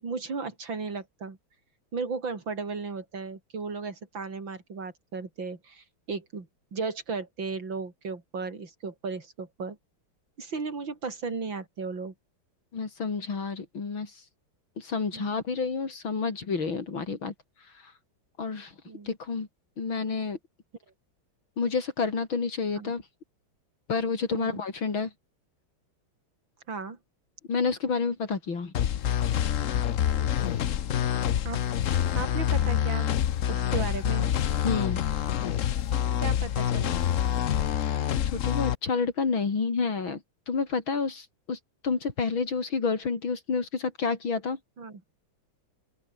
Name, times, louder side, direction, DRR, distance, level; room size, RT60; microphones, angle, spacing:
voice 1, 0.0-1.4 1.9-9.8 10.4-12.1 15.1-15.3 18.8-19.1 22.8-22.9 24.3-24.6 26.7-27.0 31.4-31.6 32.1-33.1 33.5-34.3 36.2-37.0 44.8-45.0, right 4 dB, 70° right, 4.5 m, -35 dB
voice 2, 12.7-14.1 14.8-17.3 18.4-18.7 19.1-19.5 19.8-20.4 21.6-23.0 23.9-25.1 27.5-28.7 34.6-35.0 38.3-40.2 40.5-41.6 41.8-44.6, left 5 dB, 75° left, 4.0 m, -29 dB
sound 1, 28.7-38.7, left 10 dB, 55° left, 0.9 m, -26 dB
open air
omnidirectional pair, 2.2 m